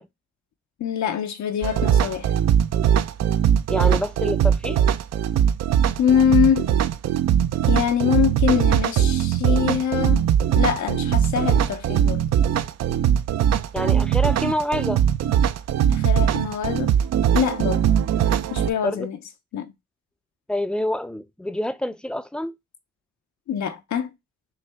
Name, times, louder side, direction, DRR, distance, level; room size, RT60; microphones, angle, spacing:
voice 1, 0.8-2.3 6.0-6.8 7.7-10.2 10.6-12.2 15.9-16.9 17.3-17.9 18.5-19.2 19.5-19.7 23.5-24.1, left 8 dB, 70° left, 0.6 m, -23 dB
sound 1, 1.6-18.7, right 9 dB, 60° right, 0.5 m, -20 dB
voice 2, 3.7-4.8 13.7-15.0 18.8-19.1 20.5-22.5, left 1 dB, 5° left, 0.4 m, -27 dB
5.7 x 2.0 x 3.4 m
cardioid pair, 70°, 30 cm